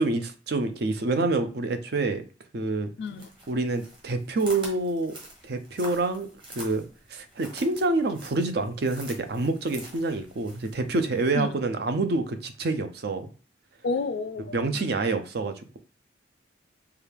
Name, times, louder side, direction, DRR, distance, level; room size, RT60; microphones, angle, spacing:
voice 1, 0.0-2.2 2.5-2.9 3.5-5.1 5.4-6.3 6.6-6.8 7.1-13.3 14.5-15.8, right 2 dB, 60° right, 0.5 m, -27 dB
voice 2, 3.0-3.3 11.3-11.5 13.8-14.9, left 4 dB, 65° left, 0.4 m, -31 dB
sound 1, 3.1-11.3, right 1 dB, 30° right, 1.3 m, -46 dB
4.9 x 2.3 x 3.3 m
head